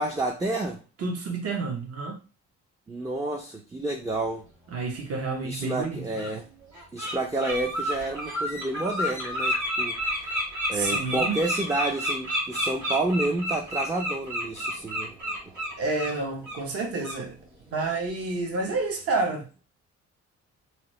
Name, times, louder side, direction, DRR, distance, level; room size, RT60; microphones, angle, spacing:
voice 1, 0.0-0.8 2.9-4.4 5.4-6.5 6.9-15.6, right 2 dB, 10° right, 0.4 m, -30 dB
voice 2, 1.0-2.2 4.7-6.2 10.7-11.4 15.8-17.4 17.7-19.6, right 3 dB, 50° right, 0.8 m, -29 dB
Bird, 5.3-5.4 6.2-6.3 6.7-7.1 7.4-16.1 16.4-16.6 17.0-17.2, equal, 75° right, 1.7 m, -30 dB
2.9 x 2.0 x 3.0 m
cardioid pair, 90°, 30 cm